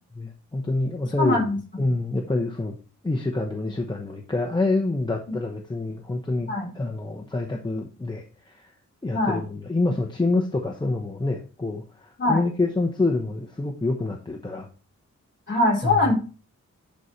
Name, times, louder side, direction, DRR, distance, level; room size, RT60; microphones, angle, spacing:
voice 1, 0.1-1.4 1.8-2.8 3.0-8.7 9.0-14.7 15.8-16.1, left 2 dB, 15° left, 0 dB, 0.9 m, -27 dB
voice 2, 1.2-1.6 6.5-6.7 9.1-9.4 12.2-12.4 15.5-16.1, left 2 dB, 40° left, -3 dB, 4.4 m, -22 dB
11.5 x 4.2 x 4.5 m, 0.35 s
wide cardioid pair, 170°, 30 cm